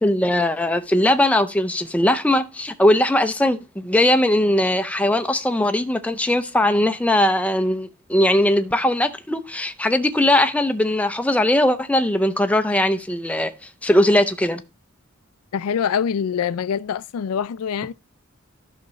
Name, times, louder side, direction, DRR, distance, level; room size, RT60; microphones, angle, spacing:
voice 1, 0.0-14.6, left 1 dB, 5° left, 0.5 m, -20 dB
voice 2, 15.5-17.9, left 7 dB, 80° left, 0.4 m, -24 dB
11.5 x 5.8 x 3.1 m
head